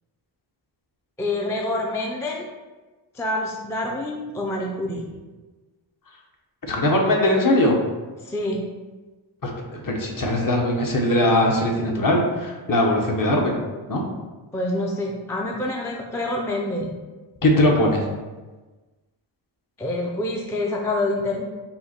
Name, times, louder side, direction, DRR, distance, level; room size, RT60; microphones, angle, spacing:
voice 1, 1.2-2.5 3.1-5.0 8.2-8.6 14.5-16.9 19.8-21.4, left 1 dB, 5° left, -1 dB, 0.3 m, -26 dB
voice 2, 6.7-7.8 9.4-13.6 13.9-14.0 17.4-18.0, left 1 dB, 45° left, 0 dB, 0.8 m, -20 dB
5.4 x 2.2 x 4.2 m, 1.2 s
wide cardioid pair, 135°, 48 cm